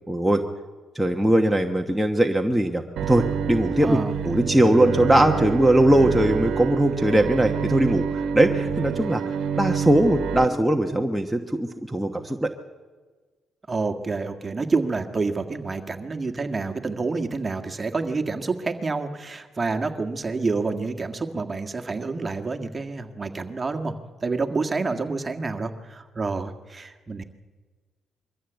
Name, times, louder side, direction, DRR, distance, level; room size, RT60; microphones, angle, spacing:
voice 1, 0.1-0.4 0.9-4.0 4.2-9.2 9.6-12.5, right 1 dB, 5° right, 3 dB, 1.2 m, -20 dB
Bowed string instrument, 3.0-10.5, right 7 dB, 70° right, 1.2 m, -27 dB
voice 2, 3.8-4.1 13.7-23.9 24.2-27.2, right 3 dB, 25° right, 5 dB, 1.7 m, -28 dB
22.5 x 14.0 x 8.1 m, 1.4 s
cardioid pair, 90°, 0 cm